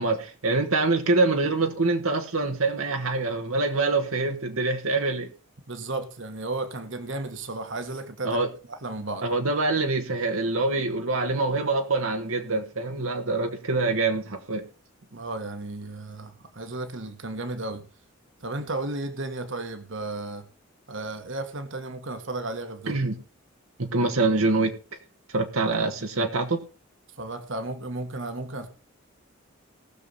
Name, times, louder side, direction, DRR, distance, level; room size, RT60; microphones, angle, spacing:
voice 1, 0.0-5.3 8.2-8.5 9.2-14.6 22.9-23.1 23.8-24.7 25.3-26.6, right 3 dB, 80° right, 1.5 m, -25 dB
voice 2, 5.7-8.4 8.7-9.3 15.1-17.8 18.4-20.5 20.9-23.0 27.2-28.7, right 2 dB, 60° right, 1.6 m, -34 dB
19.0 x 6.9 x 4.1 m
head